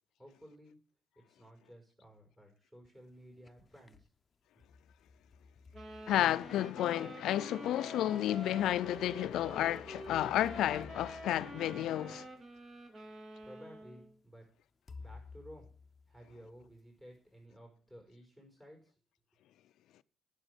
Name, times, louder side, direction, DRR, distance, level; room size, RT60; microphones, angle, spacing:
voice 1, 0.2-0.8 1.1-4.1 13.4-14.5 15.0-15.7 16.1-18.9, equal, 15° right, 4.9 m, -55 dB
sound 1, 3.1-4.1 4.6-7.0 8.2-12.6 13.4-13.5 14.9-16.8, left 4 dB, 30° left, 0.7 m, -55 dB
sound 2, 5.7-14.1, right 1 dB, 40° right, 2.5 m, -48 dB
voice 2, 6.1-12.3, left 12 dB, 80° left, 0.4 m, -32 dB
10.5 x 6.5 x 8.1 m
cardioid pair, 90°, 0 cm